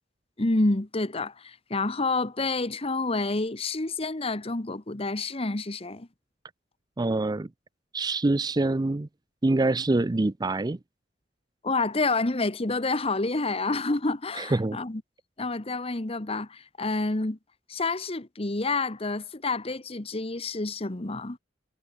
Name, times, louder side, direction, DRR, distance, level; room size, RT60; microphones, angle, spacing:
voice 1, 0.4-6.1 11.6-15.0 15.4-17.4 17.7-21.4, left 3 dB, 30° left, 1.2 m, -28 dB
voice 2, 7.0-7.5 7.9-9.1 9.4-10.8 14.4-14.8, right 2 dB, 20° right, 0.5 m, -25 dB
head